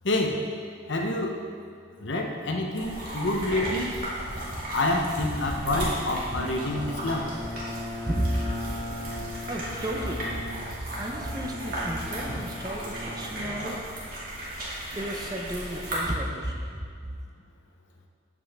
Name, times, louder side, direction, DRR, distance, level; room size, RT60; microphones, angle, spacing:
voice 1, 0.0-0.5 0.9-1.4 2.0-4.0 4.7-7.3, left 2 dB, 65° left, 2 dB, 0.9 m, -27 dB
sound 1, 2.8-16.0, right 1 dB, 45° right, 2.2 m, -35 dB
Bowed string instrument, 5.6-14.0, left 1 dB, 30° left, 1.8 m, -39 dB
voice 2, 8.1-8.4 9.5-10.3 11.0-13.8 15.0-16.8, right 1 dB, 20° right, 1 dB, 0.7 m, -32 dB
9.2 x 7.6 x 3.5 m, 2.2 s
head